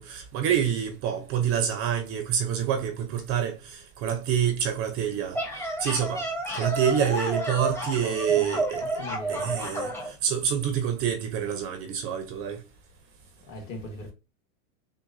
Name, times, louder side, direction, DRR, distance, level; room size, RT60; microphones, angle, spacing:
voice 1, 0.0-5.4 5.8-6.2 6.5-8.8 9.3-9.9 10.2-12.6, right 8 dB, 35° right, 0.6 m, -27 dB
sound 1, 5.1-10.1, right 1 dB, 5° left, 0.9 m, -31 dB
voice 2, 8.0-9.8 13.5-14.1, left 1 dB, 35° left, 1.3 m, -40 dB
6.0 x 2.1 x 2.6 m
supercardioid pair, 135°, 38 cm